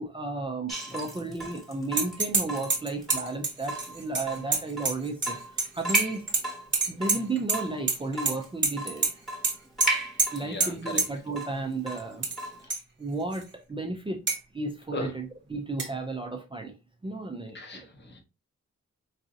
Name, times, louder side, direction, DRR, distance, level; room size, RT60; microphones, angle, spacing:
voice 1, 0.0-6.2 6.9-9.2 10.3-12.3 12.6-12.7 13.0-14.2 14.5-15.3 15.5-16.7 17.0-17.9, right 3 dB, 20° right, 2 dB, 0.4 m, -33 dB
Water tap faucet / Drip, 0.7-12.7, right 1 dB, ahead, 1.1 m, -36 dB
sound 1, 2.0-2.4 2.7-5.3 5.6-6.4 6.7-7.6 7.9-8.3 8.6-8.7 9.0-9.1 9.4-9.5 9.8-9.9 10.2-10.3 10.6-10.7 11.0-11.1 12.0-12.4 12.7-12.8 13.3-13.4 14.3-14.4 15.8-15.9, right 4 dB, 40° right, 0.8 m, -26 dB
voice 2, 10.4-11.0 12.6-12.8 14.9-15.1 17.5-18.2, left 1 dB, 40° left, 4 dB, 0.8 m, -37 dB
4.0 x 2.5 x 2.6 m, 0.27 s
wide cardioid pair, 125°, 29 cm